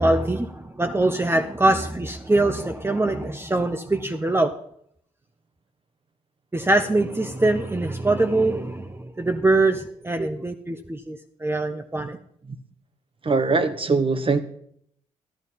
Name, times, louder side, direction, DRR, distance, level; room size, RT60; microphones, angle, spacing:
voice 1, 0.0-4.5 6.5-12.2, right 2 dB, 15° right, 7 dB, 1.0 m, -23 dB
voice 2, 13.2-14.4, right 4 dB, 35° right, 10 dB, 1.2 m, -22 dB
12.0 x 11.5 x 4.2 m, 0.68 s
hypercardioid pair, 45°, 15 cm